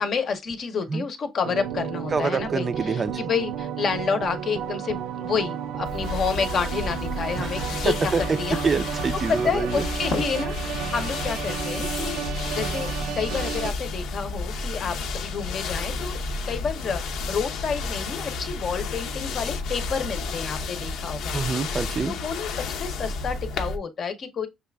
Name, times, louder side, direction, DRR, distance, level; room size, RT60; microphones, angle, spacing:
voice 1, 0.0-8.6 9.3-16.2 16.5-21.4 22.1-24.5, left 6 dB, 45° left, 0.8 m, -29 dB
sound 1, 1.4-13.7, right 9 dB, 90° right, 0.5 m, -32 dB
voice 2, 2.1-3.3 7.4-8.2 8.6-9.9 21.3-22.1, right 4 dB, 30° right, 0.4 m, -26 dB
sound 2, 5.8-23.8, left 3 dB, 80° left, 0.7 m, -31 dB
6.4 x 2.4 x 3.4 m
cardioid pair, 135°, 0 cm